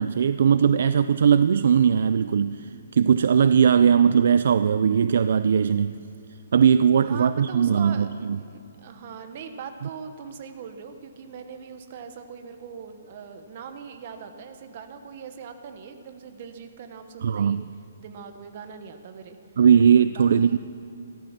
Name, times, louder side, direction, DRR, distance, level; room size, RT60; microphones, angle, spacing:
voice 1, 0.0-6.0 6.5-8.4 17.2-17.6 19.6-20.6, right 7 dB, 55° right, 12 dB, 0.3 m, -19 dB
voice 2, 7.0-17.6 18.0-19.4 20.1-20.6, right 6 dB, 35° right, 7 dB, 1.1 m, -41 dB
15.0 x 13.5 x 5.9 m, 2.6 s
hypercardioid pair, 175°, 0 cm